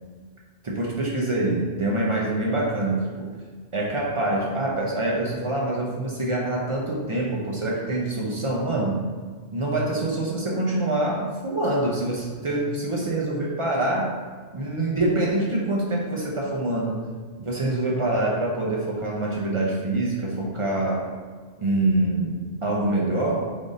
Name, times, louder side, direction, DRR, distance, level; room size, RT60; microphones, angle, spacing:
voice 1, 0.6-3.3 3.7-9.0 9.5-14.2 14.5-17.0 17.4-21.1 21.6-23.5, right 2 dB, 50° right, -3 dB, 0.3 m, -25 dB
3.5 x 2.6 x 3.7 m, 1.6 s
omnidirectional pair, 1.2 m